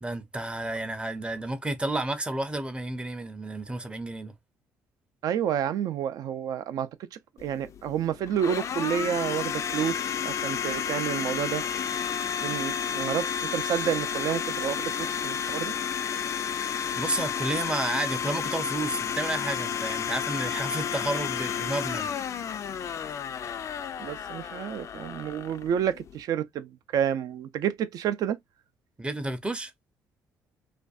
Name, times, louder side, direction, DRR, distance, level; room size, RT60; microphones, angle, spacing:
voice 1, 0.0-4.3 16.9-22.1 29.0-29.7, right 2 dB, 15° right, 0.5 m, -31 dB
voice 2, 5.2-11.6 12.4-15.7 24.0-28.4, right 9 dB, 70° right, 0.4 m, -30 dB
Domestic sounds home sounds, 7.4-26.2, left 8 dB, 50° left, 0.3 m, -31 dB
2.5 x 2.2 x 2.3 m
cardioid pair, 80°, 7 cm